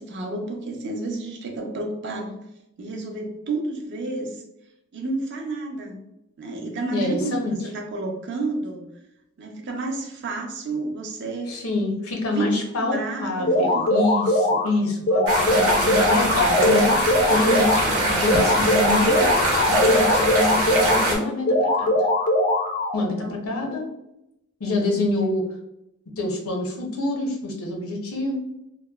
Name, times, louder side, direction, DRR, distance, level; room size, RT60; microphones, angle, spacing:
voice 1, 0.0-2.4 2.8-4.4 4.9-6.0 6.4-8.8 9.4-11.6 12.1-14.2 23.2-23.5 24.9-25.0, right 2 dB, 55° right, 2 dB, 0.5 m, -31 dB
voice 2, 6.9-7.6 11.5-19.2 19.6-22.0 22.9-23.8 24.6-25.5 26.2-28.4, left 2 dB, 80° left, 1 dB, 0.6 m, -26 dB
sound 1, 13.5-14.7 15.1-17.9 18.3-21.1 21.5-23.0, left 1 dB, 35° left, 0.4 m, -21 dB
sound 2, 15.3-21.2, right 1 dB, 80° right, 0.8 m, -23 dB
2.9 x 2.1 x 2.2 m, 0.85 s
head